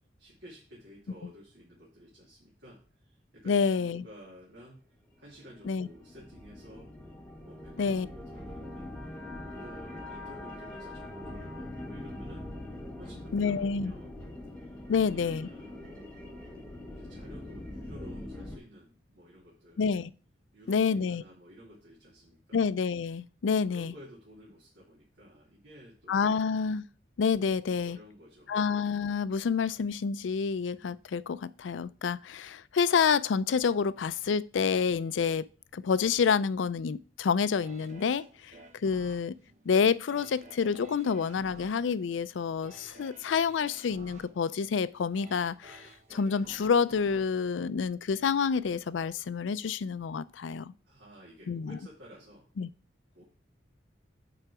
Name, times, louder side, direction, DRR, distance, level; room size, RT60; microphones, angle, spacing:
voice 1, 0.2-4.8 5.2-6.9 7.4-8.9 9.4-12.7 13.0-14.1 14.6-16.3 16.9-19.9 20.5-22.7 23.7-26.5 27.8-28.7 50.8-52.5 53.1-53.2, equal, 75° right, 2.4 m, -52 dB
voice 2, 3.5-4.0 5.7-5.9 7.8-8.1 13.3-13.9 14.9-15.5 19.8-20.1 20.7-21.2 22.5-23.9 26.1-26.8 27.2-28.0 28.5-35.4 35.7-38.5 38.8-39.4 39.7-50.7 51.5-51.8 52.6-52.7, left 6 dB, 85° left, 0.4 m, -28 dB
sound 1, 5.1-18.6, left 1 dB, 5° left, 1.3 m, -43 dB
sound 2, 37.6-48.5 49.0-49.1, right 2 dB, 40° right, 0.8 m, -53 dB
9.0 x 3.9 x 4.7 m
head